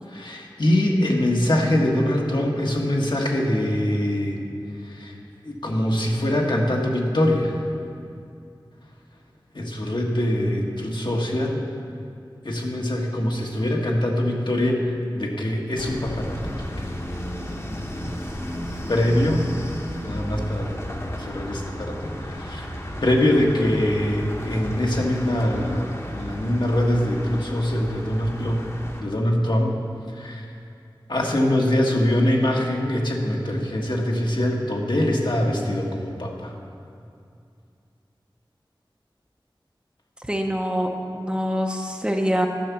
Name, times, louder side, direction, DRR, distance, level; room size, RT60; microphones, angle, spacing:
voice 1, 0.1-4.4 4.8-5.1 5.4-7.6 9.5-11.6 12.4-16.9 18.9-19.5 20.0-22.7 23.0-28.6 29.0-29.8 30.1-30.4 31.1-36.5, left 1 dB, 65° left, -1 dB, 1.3 m, -23 dB
sound 1, 15.8-29.0, equal, 35° left, 1.1 m, -33 dB
voice 2, 40.3-42.5, equal, 10° right, 2 dB, 0.8 m, -25 dB
10.5 x 5.7 x 7.0 m, 2.5 s
wide cardioid pair, 55°, 9 cm